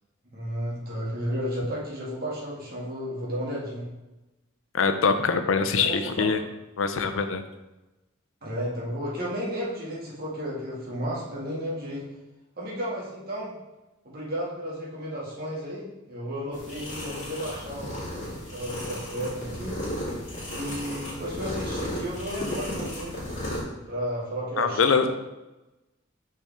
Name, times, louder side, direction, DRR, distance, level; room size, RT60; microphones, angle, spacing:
voice 1, 0.2-3.9 5.9-6.4 8.4-12.0 12.6-13.6 14.0-18.0 18.5-19.8 20.4-23.2 23.9-25.1, equal, 50° right, -6 dB, 2.2 m, -33 dB
voice 2, 4.7-6.4 6.8-7.4 24.6-25.1, left 5 dB, 90° left, 8 dB, 0.6 m, -23 dB
sound 1, 16.5-23.6, left 1 dB, 40° left, 2.2 m, -34 dB
5.8 x 5.7 x 3.5 m, 1.0 s
head